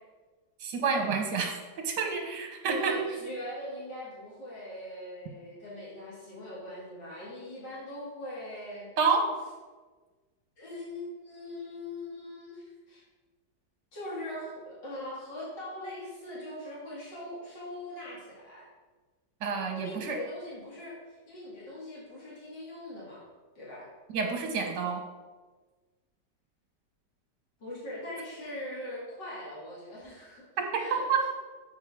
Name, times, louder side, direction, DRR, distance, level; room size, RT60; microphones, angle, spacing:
voice 1, 0.6-3.0 9.0-9.3 19.4-20.2 24.1-25.0 30.9-31.3, right 5 dB, 75° right, 4 dB, 1.8 m, -29 dB
voice 2, 2.7-8.9 10.6-13.0 13.9-18.7 19.7-23.2 23.6-23.9 27.6-30.4 30.7-31.0, left 1 dB, 90° left, -7 dB, 2.9 m, -41 dB
7.7 x 5.3 x 4.8 m, 1.3 s
omnidirectional pair, 1.9 m